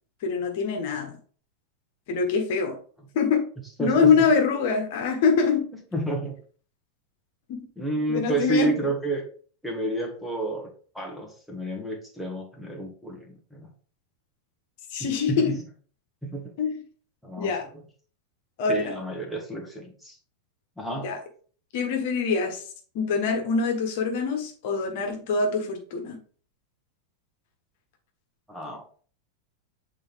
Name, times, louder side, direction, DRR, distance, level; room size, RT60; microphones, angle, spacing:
voice 1, 0.2-1.1 2.1-2.8 3.1-3.4 3.8-5.7 7.5-7.6 8.1-8.7 14.9-15.5 16.6-16.8 17.4-17.6 18.6-18.9 21.0-21.2 21.7-22.6 22.9-26.2, left 5 dB, 50° left, 3 dB, 1.5 m, -24 dB
voice 2, 3.8-4.1 5.9-6.3 7.8-9.2 9.6-13.7 15.0-15.6 16.2-16.5 17.2-17.5 18.7-20.2 20.8-21.1 28.5-28.8, right 2 dB, ahead, 1 dB, 1.6 m, -30 dB
8.5 x 4.2 x 3.5 m, 0.43 s
figure-of-eight pair, 90°, 0 cm